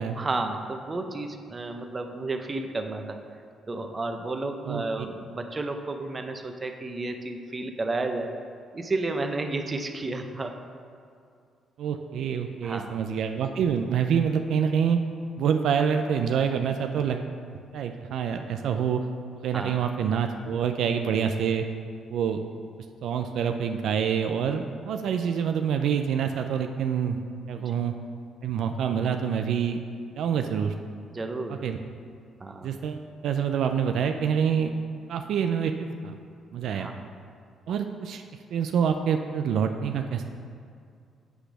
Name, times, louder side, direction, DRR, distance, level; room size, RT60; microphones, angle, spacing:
voice 1, 0.2-3.2 3.7-8.3 8.7-10.5 12.6-13.0 19.5-19.8 31.1-31.6 32.4-32.7 36.7-37.0, right 2 dB, 30° right, 5 dB, 0.6 m, -32 dB
voice 2, 11.8-15.0 15.4-17.3 17.7-19.0 19.4-21.7 22.1-22.4 23.0-27.2 27.5-27.9 28.4-29.8 30.2-30.7 31.5-31.8 32.6-34.7 35.1-36.1 36.5-36.9 37.7-38.2 38.5-40.3, right 7 dB, 75° right, 6 dB, 0.3 m, -26 dB
8.0 x 3.3 x 6.0 m, 2.3 s
cardioid pair, 90°, 0 cm